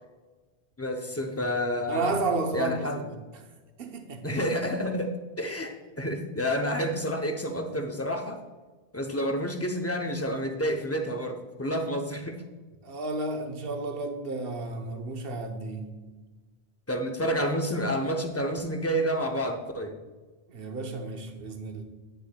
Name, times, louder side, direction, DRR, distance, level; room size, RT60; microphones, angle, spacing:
voice 1, 0.8-3.0 4.2-8.4 8.9-12.4 16.9-19.9, equal, 20° left, 0.4 m, -29 dB
voice 2, 1.9-3.1 3.8-4.4 12.8-16.0 20.5-21.8, right 3 dB, 65° right, 1.0 m, -32 dB
9.6 x 6.9 x 2.2 m
omnidirectional pair, 1.0 m